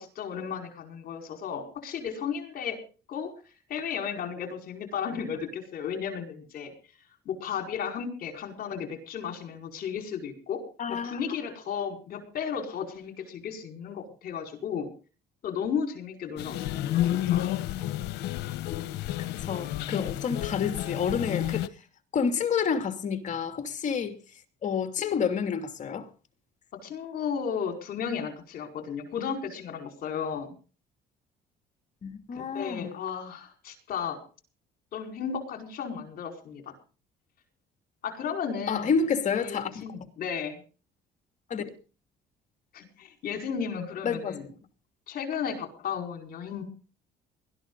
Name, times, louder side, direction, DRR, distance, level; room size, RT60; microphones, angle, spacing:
voice 1, 0.0-2.8 3.1-3.3 3.7-6.7 7.2-14.9 15.4-17.6 26.7-30.5 32.3-34.2 34.9-36.7 38.0-38.9 39.3-40.6 42.7-44.5 45.1-46.6, left 7 dB, 60° left, 4.9 m, -34 dB
voice 2, 10.8-11.2 19.4-21.7 22.1-24.2 24.6-26.1 32.0-32.9 38.7-40.1 41.5-41.7 44.0-44.3, left 6 dB, 45° left, 2.7 m, -29 dB
sound 1, 16.4-21.7, left 13 dB, 85° left, 1.1 m, -30 dB
20.5 x 13.0 x 4.0 m
cardioid pair, 110°, 17 cm